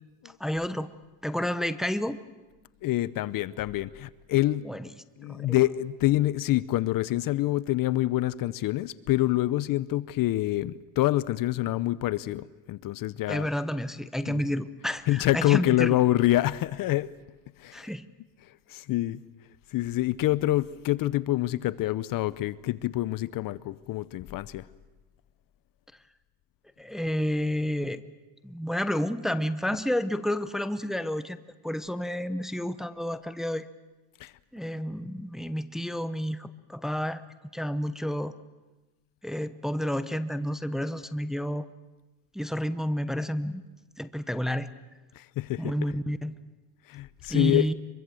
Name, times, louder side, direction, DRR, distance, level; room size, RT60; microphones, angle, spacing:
voice 1, 0.4-0.9 1.2-2.2 4.6-4.9 5.3-5.6 13.3-16.0 17.7-18.1 26.8-28.0 28.4-31.4 31.6-33.7 34.5-37.2 37.5-38.3 39.2-41.7 42.3-43.6 44.0-44.7 45.6-46.4 47.3-47.7, equal, ahead, 12 dB, 0.8 m, -30 dB
voice 2, 2.8-4.7 5.2-13.5 14.3-14.4 15.1-17.1 17.6-17.9 18.7-19.2 19.7-24.7 34.2-34.3 45.1-45.7 46.9-47.7, left 16 dB, 50° left, 18 dB, 0.7 m, -26 dB
24.0 x 23.0 x 7.8 m, 1.1 s
supercardioid pair, 115°, 44 cm